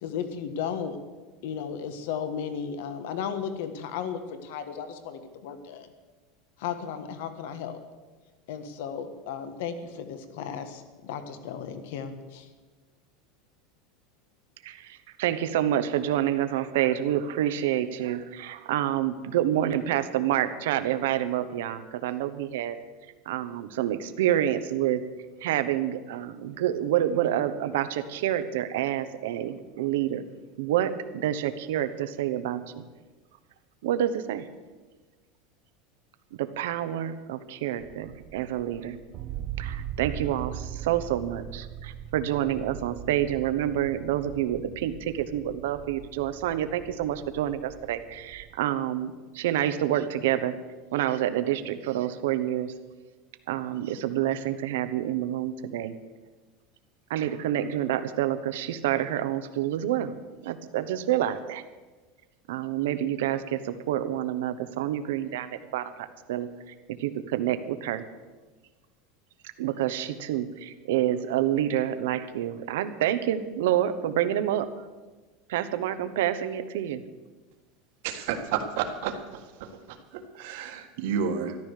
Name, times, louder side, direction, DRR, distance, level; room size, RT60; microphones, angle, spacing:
voice 1, 0.0-1.0 1.4-5.9 6.6-7.8 8.5-12.5, left 7 dB, 65° left, 9 dB, 1.5 m, -35 dB
voice 2, 14.6-22.8 23.3-25.0 25.4-30.2 30.6-32.8 33.8-34.4 36.4-39.0 39.6-50.5 50.9-52.7 53.5-55.9 57.1-60.1 60.4-61.6 62.5-66.5 67.0-68.0 69.6-74.7 75.5-77.0, right 11 dB, 80° right, 11 dB, 1.0 m, -28 dB
sound 1, 37.8-48.6, right 10 dB, 35° right, 0.6 m, -40 dB
voice 3, 78.0-79.4 79.9-81.6, right 7 dB, 60° right, 6 dB, 1.6 m, -31 dB
14.0 x 12.0 x 6.6 m, 1.3 s
supercardioid pair, 175°, 0 cm